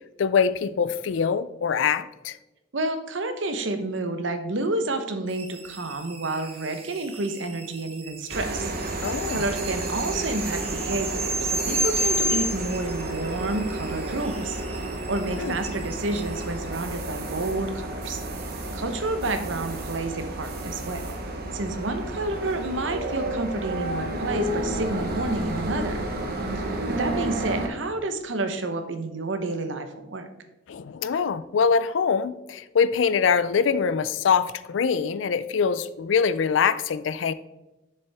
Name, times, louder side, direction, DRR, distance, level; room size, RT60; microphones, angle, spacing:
voice 1, 0.2-2.4 9.0-9.4 15.4-15.6 30.7-37.3, left 6 dB, 85° left, 15 dB, 0.4 m, -24 dB
voice 2, 2.7-8.7 9.3-14.6 15.1-18.2 18.7-21.1 21.5-26.0 26.6-30.3, right 2 dB, 85° right, 8 dB, 0.9 m, -30 dB
sound 1, 5.3-17.1, right 4 dB, 30° right, 1.0 m, -45 dB
sound 2, 8.3-27.7, right 1 dB, 55° right, 1.2 m, -30 dB
6.9 x 6.8 x 3.5 m, 1.0 s
head